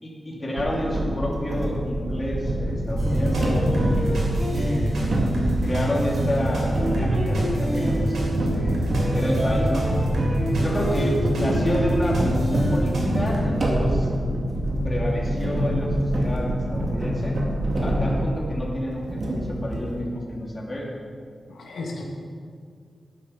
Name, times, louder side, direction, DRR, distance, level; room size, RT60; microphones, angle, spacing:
voice 1, 0.0-3.6 4.5-5.2 5.6-8.2 8.5-8.8 9.1-9.9 10.6-14.1 14.8-17.4 17.8-21.0, equal, 25° left, -4 dB, 2.5 m, -29 dB
sound 1, 0.6-18.7 19.1-20.0, equal, 50° right, 2.2 m, -26 dB
sound 2, 3.0-13.4, right 1 dB, 80° right, 3.5 m, -25 dB
voice 2, 21.5-22.0, left 3 dB, 85° left, -1 dB, 1.5 m, -35 dB
11.0 x 8.5 x 5.8 m, 2.1 s
wide cardioid pair, 100°, 0 cm